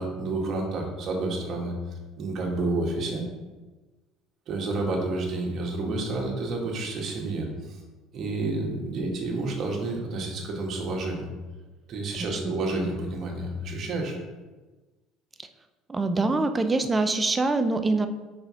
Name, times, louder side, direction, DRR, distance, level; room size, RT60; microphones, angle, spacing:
voice 1, 0.0-1.7 2.2-3.3 4.5-7.8 8.1-11.3 11.9-14.2, right 2 dB, 50° right, 0 dB, 1.8 m, -30 dB
voice 2, 15.9-18.1, right 3 dB, 20° right, 9 dB, 0.6 m, -24 dB
5.1 x 4.5 x 5.8 m, 1.2 s
supercardioid pair, 90°, 0 cm